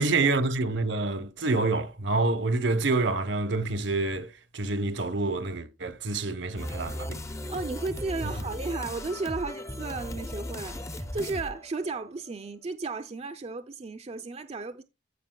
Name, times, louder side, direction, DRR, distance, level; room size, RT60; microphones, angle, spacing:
voice 1, 0.0-7.2, right 3 dB, 70° right, 0.9 m, -27 dB
sound 1, 6.6-12.3, left 1 dB, 15° left, 0.6 m, -37 dB
voice 2, 7.5-14.8, right 3 dB, 35° right, 0.5 m, -34 dB
15.0 x 5.1 x 2.2 m
head